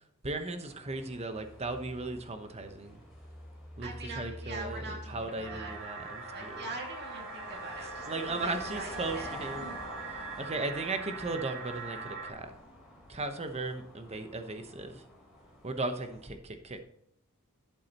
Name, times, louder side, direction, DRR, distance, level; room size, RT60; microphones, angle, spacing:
voice 1, 0.2-3.0 3.8-6.6 8.1-9.7 10.4-12.5 13.1-15.0 15.6-16.8, right 2 dB, 30° right, 7 dB, 1.0 m, -36 dB
sound 1, 0.6-16.3, equal, ahead, 3.9 m, -48 dB
voice 2, 3.8-5.8 6.2-9.8, right 2 dB, 50° right, 1 dB, 2.2 m, -43 dB
sound 2, 5.4-12.3, right 3 dB, 85° right, 3.6 m, -42 dB
11.5 x 8.4 x 3.0 m, 0.71 s
head